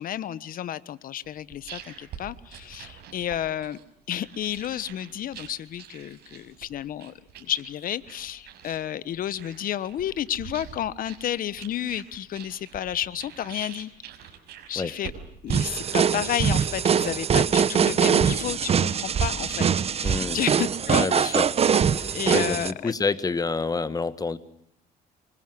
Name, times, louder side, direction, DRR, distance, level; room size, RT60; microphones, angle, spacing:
voice 1, 0.0-3.8 4.1-7.1 7.4-13.9 14.7-15.1 15.4-21.4 22.1-22.9, left 11 dB, 55° left, 16 dB, 1.2 m, -31 dB
sound 1, 1.2-17.3, right 9 dB, 70° right, 5.7 m, -46 dB
sound 2, 15.5-22.7, right 7 dB, 35° right, 1.1 m, -23 dB
voice 2, 20.0-20.4 20.9-21.5 21.9-24.4, left 4 dB, 20° left, 14 dB, 1.5 m, -28 dB
25.5 x 24.0 x 7.8 m, 0.72 s
cardioid pair, 110°, 17 cm